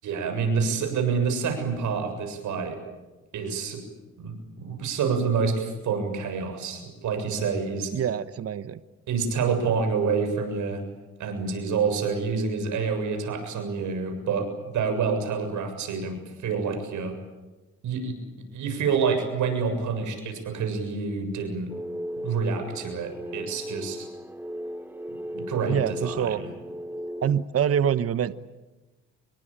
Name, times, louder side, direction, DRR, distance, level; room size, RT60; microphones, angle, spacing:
voice 1, 0.0-2.8 3.3-3.8 4.2-7.9 9.1-10.8 11.2-14.5 14.7-17.2 17.8-21.7 22.2-24.1 25.3-26.5, right 5 dB, 75° right, 6 dB, 7.3 m, -27 dB
voice 2, 7.9-8.8 25.7-26.4 27.2-28.3, right 9 dB, 50° right, 14 dB, 1.0 m, -25 dB
sound 1, 21.7-27.4, equal, 5° right, 1.0 m, -36 dB
26.5 x 22.5 x 8.9 m, 1.1 s
cardioid pair, 90°, 30 cm